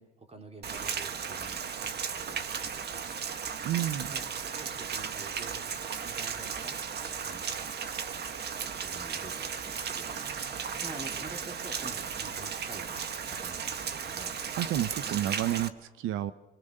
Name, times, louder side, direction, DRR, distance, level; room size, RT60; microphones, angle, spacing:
voice 1, 0.0-1.6 2.0-3.1 4.1-5.6 6.0-6.8 7.2-7.7 8.6-10.3 10.8-12.9 13.3-14.4, right 2 dB, 30° right, 4 dB, 3.4 m, -48 dB
Rain, 0.6-15.7, right 7 dB, 55° right, 1.4 m, -35 dB
voice 2, 3.6-4.1 14.6-16.3, right 12 dB, 85° right, 13 dB, 0.7 m, -30 dB
25.5 x 24.5 x 6.6 m, 1.1 s
cardioid pair, 90°, 20 cm